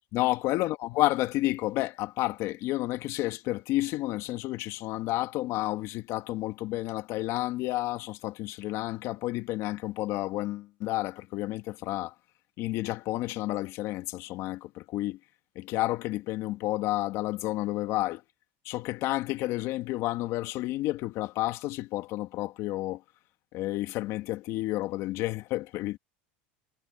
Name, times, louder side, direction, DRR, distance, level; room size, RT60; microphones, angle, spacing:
voice 1, 0.1-12.1 12.6-15.2 15.6-18.2 18.7-23.0 23.5-26.0, left 17 dB, 55° left, 2.0 m, -30 dB
supercardioid pair, 110°, 6 cm